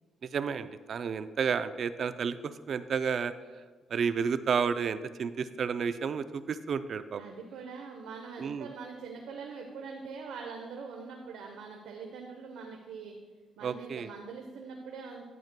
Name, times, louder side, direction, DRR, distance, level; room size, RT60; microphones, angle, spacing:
voice 1, 0.2-3.3 3.9-7.2 8.4-8.7 13.6-14.1, right 6 dB, 55° right, 12 dB, 0.4 m, -31 dB
voice 2, 7.2-13.2 13.6-15.3, right 5 dB, 85° right, 2 dB, 0.7 m, -43 dB
10.5 x 8.8 x 2.2 m, 1.5 s
cardioid pair, 90°, 0 cm